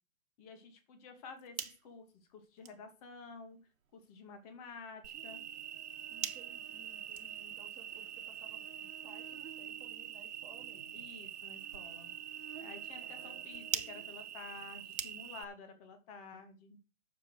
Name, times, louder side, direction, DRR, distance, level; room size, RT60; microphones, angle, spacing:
voice 1, 0.4-3.6 3.9-5.4 10.9-12.1 12.6-16.8, left 4 dB, 25° left, 6 dB, 2.4 m, -51 dB
sound 1, 1.2-15.6, right 7 dB, 85° right, 1.6 m, -48 dB
Cricket, 5.0-15.4, right 10 dB, 55° right, 1.7 m, -45 dB
voice 2, 6.1-10.9 13.0-13.5, right 3 dB, 5° right, -2 dB, 2.4 m, -59 dB
9.8 x 6.9 x 6.3 m, 0.33 s
hypercardioid pair, 160°, 40 cm